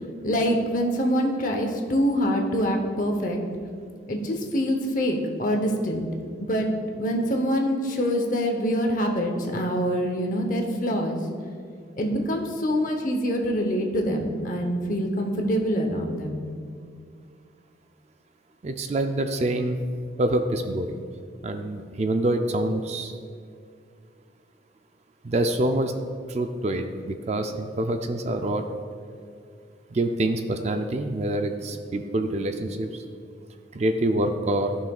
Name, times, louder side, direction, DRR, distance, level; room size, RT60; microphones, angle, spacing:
voice 1, 0.2-3.4 4.1-6.0 6.4-6.7 7.0-11.2 12.0-16.4, equal, 45° left, 3 dB, 0.9 m, -25 dB
voice 2, 18.6-19.8 20.2-21.0 21.4-23.2 25.2-25.9 26.3-28.6 29.9-32.9 33.7-34.8, right 1 dB, 35° right, 6 dB, 0.4 m, -26 dB
14.5 x 5.7 x 2.3 m, 2.2 s
head